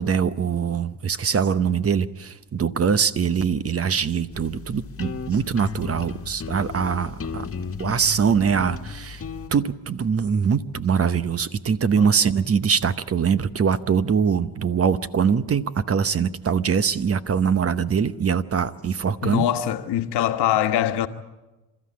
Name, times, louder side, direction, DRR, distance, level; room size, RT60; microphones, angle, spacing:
voice 1, 0.0-7.5 7.8-9.2 9.5-19.4, right 6 dB, 35° right, 0.9 m, -23 dB
sound 1, 4.3-9.5, left 5 dB, 35° left, 1.7 m, -35 dB
voice 2, 19.2-21.1, left 11 dB, 75° left, 1.3 m, -23 dB
27.5 x 13.5 x 8.5 m
cardioid pair, 95°, 41 cm